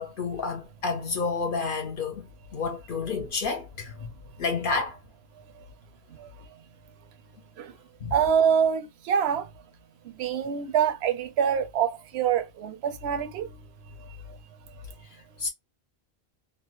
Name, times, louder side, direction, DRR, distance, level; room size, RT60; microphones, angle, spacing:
voice 1, 0.0-2.3 2.5-4.1 4.4-5.0 8.0-8.1 15.4-15.5, left 4 dB, 60° left, 0.7 m, -30 dB
voice 2, 8.1-9.5 10.2-13.5, right 8 dB, 80° right, 0.8 m, -25 dB
2.4 x 2.1 x 2.8 m
omnidirectional pair, 1.1 m